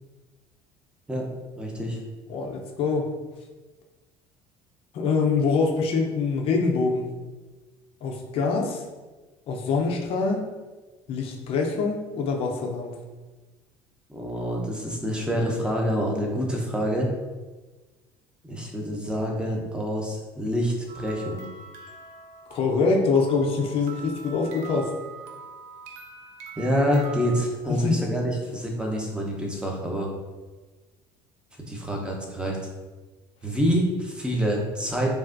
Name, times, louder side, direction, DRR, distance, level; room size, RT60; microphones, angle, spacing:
voice 1, 1.6-2.0 14.1-17.1 18.4-21.5 26.6-30.1 31.7-32.6 33.4-35.1, equal, 10° right, -1 dB, 0.7 m, -27 dB
voice 2, 2.3-3.1 4.9-7.1 8.0-8.8 9.5-10.5 11.1-12.9 22.5-24.9 27.7-28.0, left 4 dB, 55° left, 1 dB, 0.6 m, -24 dB
sound 1, 20.9-27.5, right 5 dB, 75° right, 0.5 m, -43 dB
3.2 x 2.4 x 2.5 m, 1.2 s
supercardioid pair, 80°, 12 cm